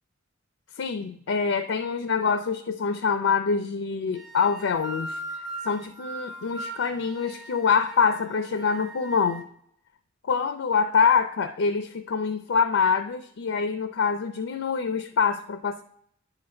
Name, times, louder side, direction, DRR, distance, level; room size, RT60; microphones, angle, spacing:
voice 1, 0.8-5.2 5.6-9.5 10.2-15.8, left 5 dB, 70° left, 9 dB, 0.5 m, -25 dB
sound 1, 4.1-9.4, right 1 dB, 20° right, 1.3 m, -40 dB
10.0 x 3.9 x 4.4 m, 0.68 s
head